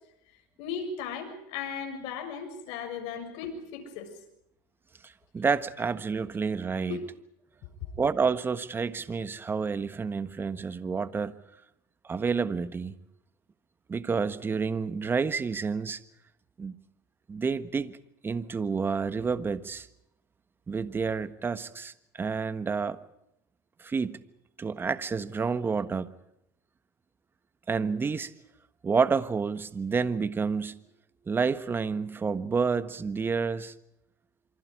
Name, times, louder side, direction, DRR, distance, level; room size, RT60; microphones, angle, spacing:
voice 1, 0.6-4.1 6.9-7.0 7.8-7.9, left 6 dB, 65° left, 6 dB, 6.9 m, -36 dB
voice 2, 5.0-7.0 8.0-11.3 12.0-12.9 13.9-16.0 16.6-16.8 17.3-18.0 18.2-19.9 20.7-23.0 23.8-24.2 24.6-26.1 27.7-28.3 28.8-30.8 31.3-33.7, right 5 dB, 20° right, 13 dB, 1.4 m, -29 dB
27.5 x 25.0 x 4.9 m, 0.78 s
supercardioid pair, 110°, 10 cm